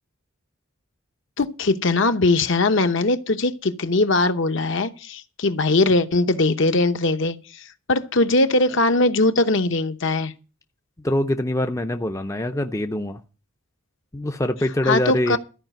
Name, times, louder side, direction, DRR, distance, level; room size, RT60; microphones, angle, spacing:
voice 1, 1.4-10.3 14.8-15.4, left 2 dB, 55° left, 0.8 m, -20 dB
voice 2, 11.0-13.2 14.1-15.4, left 1 dB, 15° left, 0.5 m, -24 dB
13.5 x 5.0 x 8.9 m
head